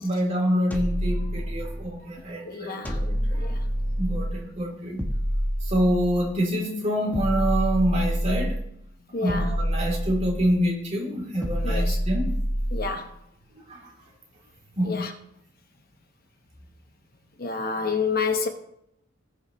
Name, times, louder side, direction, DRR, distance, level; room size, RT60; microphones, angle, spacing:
voice 1, 0.0-3.5 4.0-5.0 5.6-8.6 9.2-12.3 13.7-13.9 14.8-15.1, equal, 35° right, 3.4 m, -26 dB
sound 1, 0.7-2.0 2.9-4.5 5.0-6.4 7.1-8.7 9.3-10.7 11.4-13.0, equal, 10° left, 1.2 m, -27 dB
voice 2, 2.4-3.0 3.4-3.6 9.1-9.5 11.6-12.0 12.7-13.1 14.8-15.1 17.4-18.5, left 5 dB, 50° left, 1.1 m, -28 dB
19.5 x 6.7 x 3.2 m
head